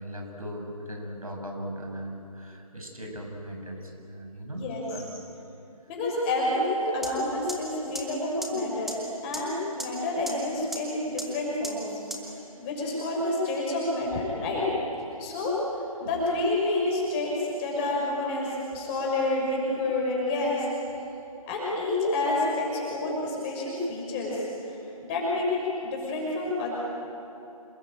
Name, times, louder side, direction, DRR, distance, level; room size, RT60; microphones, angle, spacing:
voice 1, 0.0-5.1 12.4-12.5 19.7-19.8, equal, 70° right, 2 dB, 6.5 m, -38 dB
voice 2, 5.9-12.0 12.2-14.7 15.2-15.6 16.0-20.7 21.5-26.8, left 2 dB, 15° left, -3 dB, 6.1 m, -29 dB
sound 1, 7.0-7.1 7.5-7.6 7.9-8.0 8.4-8.5 8.9-9.0 9.3-9.4 9.8-9.9 10.3-10.4 10.7-10.8 11.2-11.3 11.6-11.7 12.1-12.2, right 1 dB, ahead, 1.3 m, -33 dB
27.0 x 21.5 x 9.0 m, 2.8 s
figure-of-eight pair, 145°, 19 cm